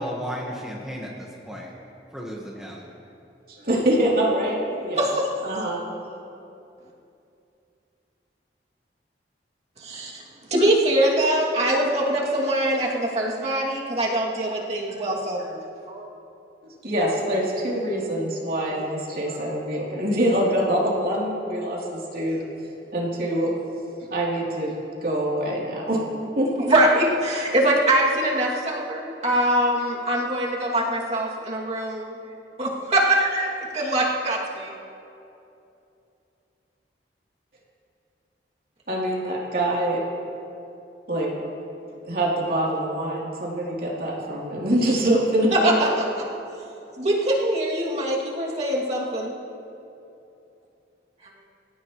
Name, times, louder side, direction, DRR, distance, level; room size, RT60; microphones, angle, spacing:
voice 1, 0.0-1.7 2.1-2.9 4.9-5.0, equal, 5° right, -4 dB, 1.5 m, -34 dB
voice 2, 3.5-4.6 4.8-5.0 5.4-5.8 16.8-22.4 22.9-23.5 24.1-24.7 25.0-26.0 26.4-26.5 38.9-40.0 41.1-41.3 42.0-45.9, right 1 dB, 55° right, -4 dB, 3.5 m, -24 dB
voice 3, 5.0-5.3 9.8-10.2 10.5-16.1 26.5-32.1 32.6-34.7 45.5-45.9 46.9-49.3, right 1 dB, 35° right, -4 dB, 2.6 m, -23 dB
26.0 x 16.0 x 3.2 m, 2.8 s
head